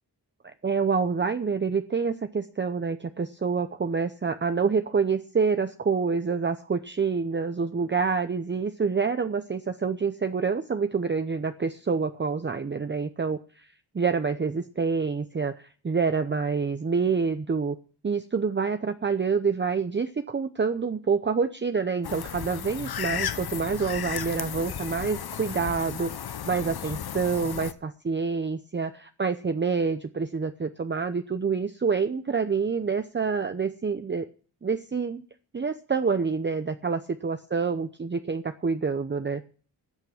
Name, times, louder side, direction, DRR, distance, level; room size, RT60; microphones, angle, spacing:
voice 1, 0.6-13.7 13.9-17.8 18.0-34.3 34.6-35.2 35.5-39.4, right 5 dB, 25° right, 9 dB, 0.7 m, -27 dB
sound 1, 22.0-27.7, left 9 dB, 60° left, 0.9 m, -34 dB
13.0 x 6.6 x 7.6 m, 0.41 s
wide cardioid pair, 90°, 42 cm